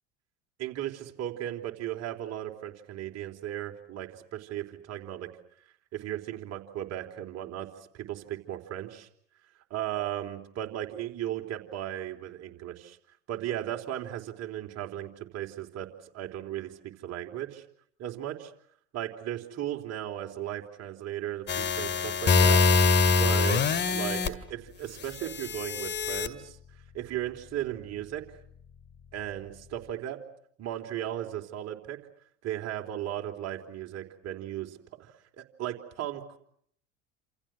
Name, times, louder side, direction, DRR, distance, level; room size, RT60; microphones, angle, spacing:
voice 1, 0.6-5.3 5.9-7.7 7.9-9.1 9.7-13.0 13.3-15.9 16.1-16.7 17.0-17.6 18.0-18.5 18.9-22.6 23.1-26.6 26.9-28.2 29.1-30.2 30.6-32.0 32.4-36.4, right 12 dB, 50° right, 4 dB, 4.0 m, -36 dB
sound 1, 21.5-24.3 25.2-26.3, left 4 dB, 30° left, 2.4 m, -24 dB
28.5 x 28.0 x 6.3 m, 0.66 s
hypercardioid pair, 80°, 34 cm